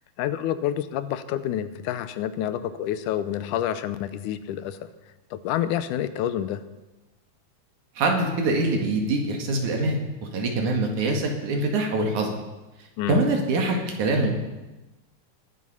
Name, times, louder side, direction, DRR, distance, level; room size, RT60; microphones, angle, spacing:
voice 1, 0.2-4.9 5.3-6.7 13.0-13.2, left 11 dB, 90° left, 12 dB, 2.2 m, -28 dB
voice 2, 8.0-10.0 10.3-12.4 13.1-14.3, right 2 dB, 75° right, 2 dB, 3.4 m, -24 dB
20.5 x 7.6 x 5.5 m, 1.1 s
omnidirectional pair, 3.5 m